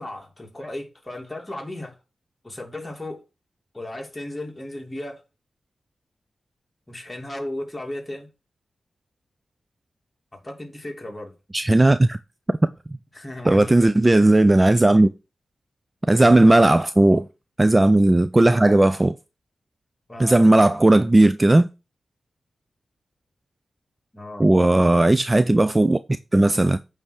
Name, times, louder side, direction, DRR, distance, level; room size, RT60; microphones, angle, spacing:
voice 1, 0.0-2.0 2.4-3.2 3.7-5.2 6.9-8.3 10.3-11.3 13.1-13.9 20.1-20.4 24.1-24.5, left 1 dB, 20° left, 2.6 m, -35 dB
voice 2, 11.5-12.2 13.5-15.1 16.1-17.3 17.6-19.1 20.2-21.7 24.4-26.0 26.3-26.8, right 2 dB, 20° right, 0.4 m, -16 dB
8.8 x 3.4 x 6.3 m
cardioid pair, 70°, 0 cm